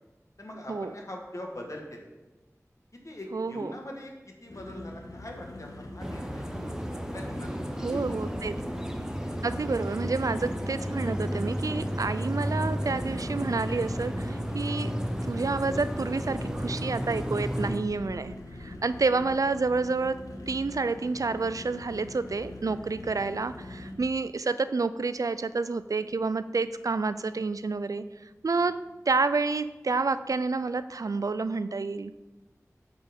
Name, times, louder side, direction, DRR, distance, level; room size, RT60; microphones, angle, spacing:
voice 1, 0.4-2.1 3.0-6.4 7.1-7.5 7.9-8.4 18.6-18.9 28.5-28.7, left 1 dB, 65° left, 1 dB, 1.5 m, -42 dB
voice 2, 3.3-3.7 7.8-8.5 9.4-14.9 15.2-18.3 18.6-20.2 20.5-28.0 28.4-28.8 29.1-32.1, right 4 dB, 80° right, 13 dB, 0.3 m, -29 dB
sound 1, 4.5-24.0, left 1 dB, 85° left, 0.9 m, -43 dB
sound 2, 6.0-17.8, equal, 10° right, 0.8 m, -33 dB
8.8 x 4.2 x 5.2 m, 1.1 s
wide cardioid pair, 55°, 6 cm